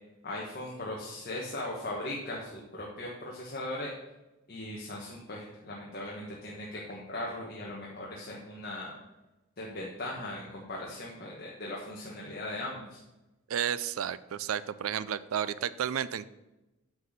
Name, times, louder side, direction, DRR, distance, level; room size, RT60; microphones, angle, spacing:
voice 1, 0.2-3.9 4.5-8.9 9.6-13.0, left 1 dB, 45° left, -4 dB, 1.4 m, -39 dB
voice 2, 13.5-16.2, right 9 dB, 75° right, 15 dB, 0.4 m, -32 dB
9.4 x 4.2 x 6.5 m, 1.0 s
head